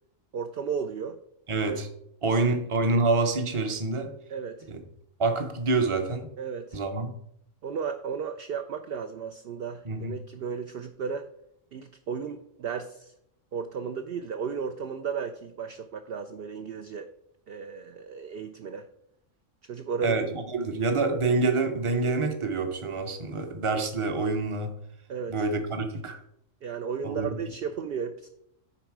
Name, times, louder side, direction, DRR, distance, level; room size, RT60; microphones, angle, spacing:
voice 1, 0.3-1.2 2.3-2.4 4.3-4.7 6.4-6.8 7.6-11.3 11.7-13.1 13.5-17.1 17.5-18.9 19.7-20.2 25.1-25.4 26.6-28.3, right 6 dB, 60° right, 0.7 m, -34 dB
voice 2, 1.5-1.9 2.2-4.1 4.7-4.8 5.2-6.3 6.7-7.1 9.8-10.1 20.0-24.7 25.3-26.2 27.0-27.3, right 3 dB, 30° right, 0.8 m, -27 dB
10.0 x 4.0 x 4.6 m
omnidirectional pair, 1.3 m